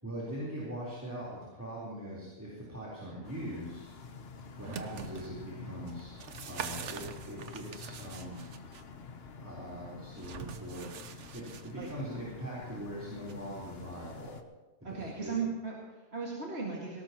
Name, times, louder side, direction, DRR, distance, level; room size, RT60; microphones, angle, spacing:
voice 1, 0.0-3.8 4.6-6.2 6.5-8.4 9.3-14.4 14.9-15.4, right 1 dB, 15° right, -7 dB, 3.9 m, -41 dB
sound 1, 3.2-14.4, left 5 dB, 60° left, 1.2 m, -48 dB
sound 2, 4.4-5.3 5.9-8.8 10.2-11.9 13.3-13.4, right 6 dB, 75° right, 1.2 m, -44 dB
voice 2, 14.8-17.0, right 5 dB, 60° right, -4 dB, 2.4 m, -37 dB
19.5 x 17.5 x 3.0 m, 1.2 s
omnidirectional pair, 1.2 m